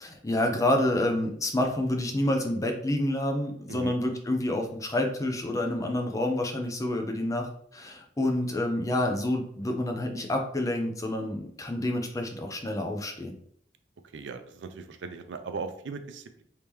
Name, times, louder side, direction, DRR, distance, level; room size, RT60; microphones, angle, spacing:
voice 1, 0.0-13.3, left 1 dB, 20° left, 3 dB, 0.5 m, -28 dB
voice 2, 14.1-16.4, right 4 dB, 75° right, 8 dB, 0.4 m, -38 dB
3.5 x 2.8 x 3.1 m, 0.64 s
head